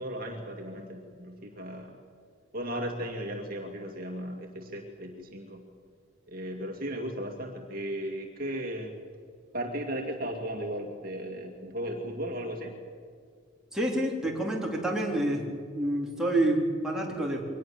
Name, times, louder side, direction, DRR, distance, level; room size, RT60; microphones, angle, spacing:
voice 1, 0.0-2.0 2.5-5.6 6.3-9.0 9.5-12.7, equal, 45° right, 2 dB, 2.2 m, -36 dB
voice 2, 13.7-15.4 15.7-17.4, right 1 dB, 5° right, -2 dB, 3.5 m, -28 dB
23.5 x 19.5 x 7.3 m, 2.1 s
head